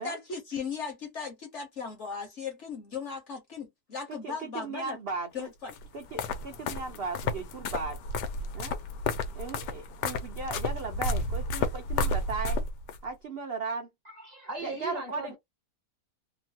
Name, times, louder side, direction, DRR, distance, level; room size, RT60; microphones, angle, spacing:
voice 1, 0.0-5.0 5.3-5.7, left 5 dB, 55° left, 0.9 m, -37 dB
voice 2, 4.1-5.5 5.9-8.0 8.5-8.8 9.4-12.6 13.0-13.9 14.6-15.4, right 4 dB, 65° right, 0.6 m, -37 dB
sound 1, 5.7-13.0, left 2 dB, 85° left, 1.2 m, -32 dB
voice 3, 14.0-15.4, right 3 dB, 30° right, 0.9 m, -38 dB
3.0 x 2.1 x 2.7 m
omnidirectional pair, 1.8 m